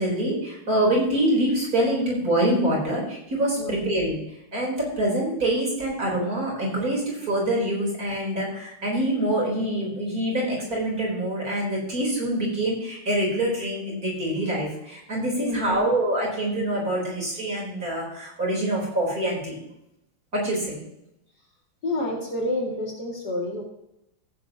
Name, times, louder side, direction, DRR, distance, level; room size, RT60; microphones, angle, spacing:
voice 1, 0.0-4.2 4.5-19.6 20.3-20.8, right 1 dB, 40° right, -3 dB, 4.5 m, -25 dB
voice 2, 15.4-15.9 21.8-23.6, left 1 dB, 45° left, -1 dB, 2.9 m, -29 dB
15.5 x 10.5 x 2.9 m, 0.81 s
omnidirectional pair, 2.4 m